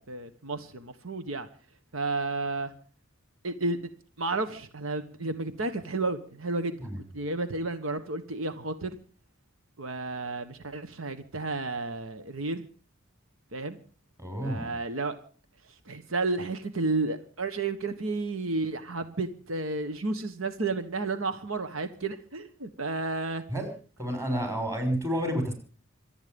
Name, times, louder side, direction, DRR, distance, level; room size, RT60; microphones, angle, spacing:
voice 1, 0.0-1.5 1.9-2.7 3.4-3.8 4.2-6.7 7.1-9.0 9.8-12.6 13.5-13.8 14.4-15.2 15.7-23.4, right 3 dB, 80° right, 10 dB, 1.5 m, -32 dB
voice 2, 14.2-14.7 23.5-23.7 24.0-25.5, equal, 15° right, 5 dB, 6.2 m, -30 dB
25.5 x 9.5 x 5.3 m, 0.40 s
head